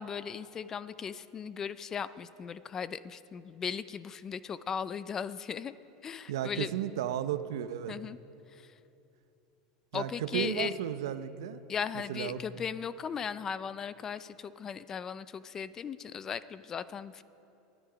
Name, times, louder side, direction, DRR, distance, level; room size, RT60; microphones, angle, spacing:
voice 1, 0.0-5.7 6.0-6.7 7.9-8.2 8.5-8.6 9.9-10.7 11.7-17.2, left 7 dB, 20° left, 16 dB, 0.4 m, -37 dB
voice 2, 6.3-8.0 9.9-11.6 11.9-12.4, right 10 dB, 90° right, 12 dB, 0.7 m, -34 dB
19.5 x 11.0 x 5.1 m, 2.8 s
supercardioid pair, 150°, 2 cm